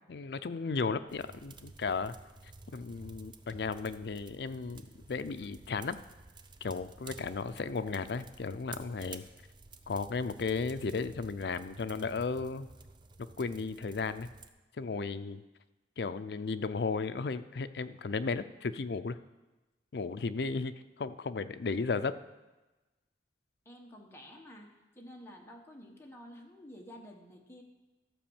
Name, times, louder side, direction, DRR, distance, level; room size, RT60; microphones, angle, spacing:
voice 1, 0.1-2.1 2.7-4.8 5.1-6.0 6.6-9.2 9.9-12.7 13.4-14.3 14.8-15.4 16.0-19.2 19.9-22.1, left 4 dB, 65° left, 12 dB, 0.5 m, -34 dB
sound 1, 1.1-14.5, right 3 dB, 25° right, 0.5 m, -52 dB
voice 2, 23.6-24.7 24.9-27.6, equal, 15° left, 0 dB, 1.3 m, -50 dB
13.0 x 5.1 x 7.1 m, 1.1 s
head